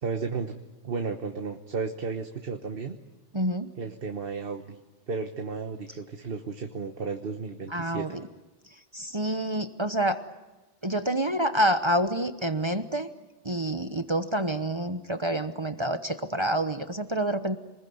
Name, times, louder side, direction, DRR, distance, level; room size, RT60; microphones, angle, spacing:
voice 1, 0.0-0.5 0.8-3.0 3.8-4.8 5.1-8.1, right 4 dB, 55° right, 5 dB, 1.4 m, -33 dB
voice 2, 3.3-3.7 7.7-8.2 8.6-10.2 10.8-13.1 13.4-17.6, right 1 dB, 25° right, 9 dB, 1.0 m, -28 dB
28.0 x 20.5 x 9.4 m, 1.1 s
omnidirectional pair, 1.2 m